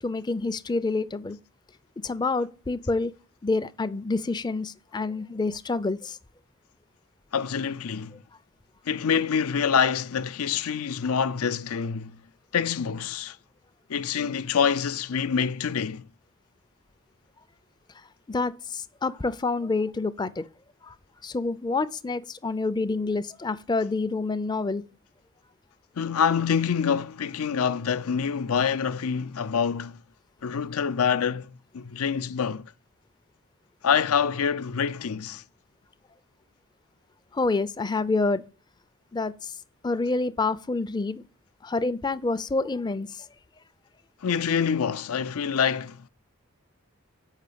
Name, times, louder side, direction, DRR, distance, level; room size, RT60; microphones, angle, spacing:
voice 1, 0.0-1.4 2.0-3.1 3.4-6.2 18.3-20.4 20.8-20.9 21.2-24.8 37.3-38.4 39.1-39.6 39.8-41.3 41.6-43.3, left 3 dB, 20° left, 0.4 m, -27 dB
voice 2, 7.3-8.2 8.9-12.2 12.5-13.4 13.9-16.1 26.0-30.0 30.4-32.7 33.8-35.4 44.2-46.1, left 7 dB, 85° left, 0.5 m, -26 dB
7.3 x 5.5 x 6.8 m
head